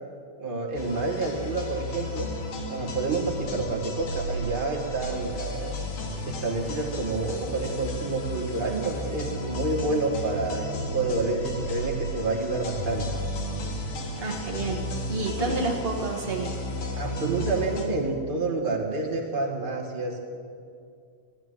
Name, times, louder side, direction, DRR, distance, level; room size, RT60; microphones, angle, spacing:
voice 1, 0.4-2.3 2.7-5.7 6.2-13.1 15.4-15.5 17.0-20.3, right 3 dB, 25° right, -1 dB, 1.2 m, -29 dB
sound 1, 0.8-17.9, left 1 dB, 60° left, 2.8 m, -33 dB
voice 2, 14.2-14.8 15.1-16.5, right 3 dB, 75° right, 0 dB, 0.5 m, -29 dB
15.5 x 9.5 x 9.4 m, 2.3 s
omnidirectional pair, 3.6 m